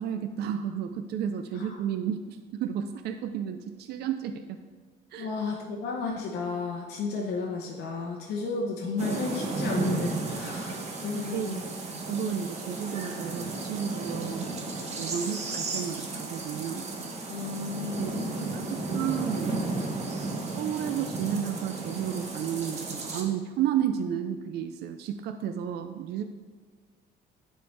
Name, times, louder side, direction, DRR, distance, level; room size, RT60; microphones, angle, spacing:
voice 1, 0.0-4.6 5.1-5.3 11.3-11.6 12.1-14.5 15.0-16.9 18.0-19.6 20.6-26.2, right 9 dB, 65° right, 8 dB, 0.4 m, -32 dB
voice 2, 5.2-11.6 17.3-18.6, left 4 dB, 65° left, -1 dB, 0.9 m, -33 dB
sound 1, 9.0-23.2, right 3 dB, 35° right, 1.1 m, -33 dB
9.8 x 4.4 x 3.3 m, 1.4 s
cardioid pair, 115°, 18 cm